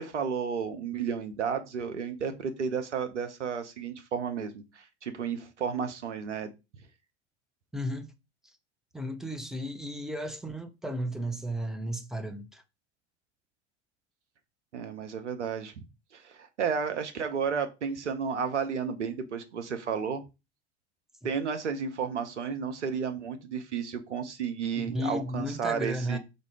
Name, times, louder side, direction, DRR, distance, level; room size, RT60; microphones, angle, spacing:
voice 1, 0.0-6.5 14.7-15.8 16.1-20.2 21.2-26.2, right 6 dB, 80° right, 0.8 m, -32 dB
voice 2, 7.7-8.1 8.4-8.5 8.9-12.6 24.9-26.2, equal, ahead, 0.6 m, -34 dB
4.1 x 2.6 x 4.7 m
figure-of-eight pair, 75°, 35 cm